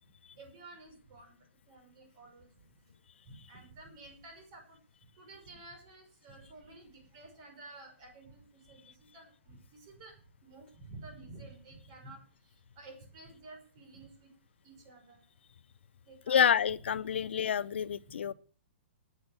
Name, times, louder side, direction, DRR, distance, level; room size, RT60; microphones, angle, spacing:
voice 1, 0.4-1.4 1.7-2.5 3.2-4.8 5.2-10.1 10.4-12.2 12.8-14.3 14.6-15.2 16.1-16.4, right 2 dB, 30° right, 5.9 m, -52 dB
voice 2, 16.3-18.3, left 8 dB, 70° left, 0.6 m, -28 dB
10.5 x 9.9 x 6.8 m
hypercardioid pair, 175°, 6 cm